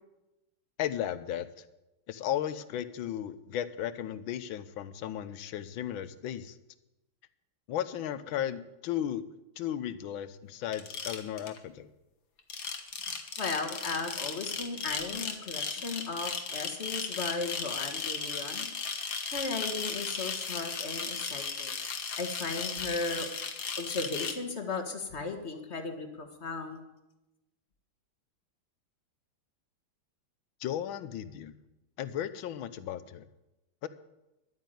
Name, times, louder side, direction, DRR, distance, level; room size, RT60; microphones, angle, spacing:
voice 1, 0.8-1.5 2.1-6.6 7.7-9.2 9.6-11.9 30.6-31.6 32.0-33.3 33.8-33.9, left 10 dB, 75° left, 13 dB, 1.5 m, -35 dB
sound 1, 10.7-11.6 12.4-24.3, left 5 dB, 55° left, 1.8 m, -36 dB
voice 2, 13.4-18.7 19.3-21.8 22.2-23.3 23.8-26.8, left 3 dB, 35° left, 6 dB, 1.6 m, -36 dB
11.5 x 9.2 x 9.1 m, 0.98 s
omnidirectional pair, 2.3 m